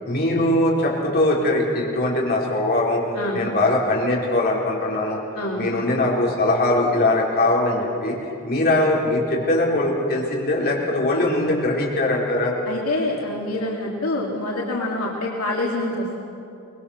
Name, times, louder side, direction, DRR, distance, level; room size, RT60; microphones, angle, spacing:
voice 1, 0.1-3.0 3.3-5.2 5.6-8.2 8.5-12.5, left 1 dB, 45° left, -4 dB, 4.3 m, -21 dB
voice 2, 5.3-5.8 12.7-16.2, left 2 dB, 80° left, -3 dB, 2.7 m, -26 dB
24.5 x 21.0 x 6.6 m, 2.7 s
head